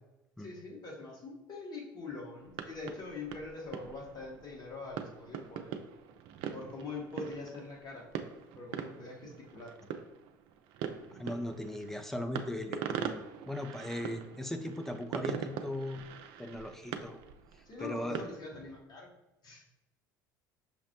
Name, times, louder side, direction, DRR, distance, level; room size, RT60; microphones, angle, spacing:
voice 1, 0.4-5.8 6.5-8.1 8.6-9.7 17.6-19.1 19.4-19.6, left 3 dB, 35° left, -1 dB, 1.2 m, -43 dB
sound 1, 2.4-18.8, right 8 dB, 55° right, 0.4 m, -43 dB
voice 2, 11.2-16.0 16.4-17.2 17.8-18.2, left 1 dB, 5° left, 6 dB, 0.4 m, -38 dB
5.8 x 2.0 x 2.9 m, 0.94 s
hypercardioid pair, 65°, 11 cm